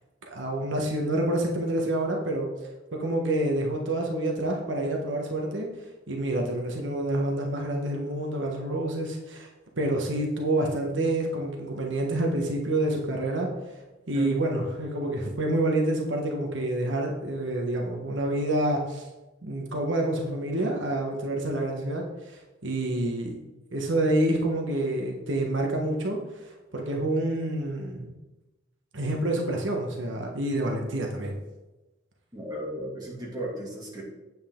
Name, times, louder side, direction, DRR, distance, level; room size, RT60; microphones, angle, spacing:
voice 1, 0.2-2.7 3.0-5.7 6.1-9.5 9.8-13.7 14.1-19.1 19.4-23.3 23.7-28.2 28.9-31.4, right 1 dB, 75° right, 1 dB, 1.5 m, -28 dB
voice 2, 32.3-34.0, right 1 dB, 20° right, -5 dB, 2.8 m, -35 dB
9.0 x 8.5 x 3.9 m, 1.1 s
head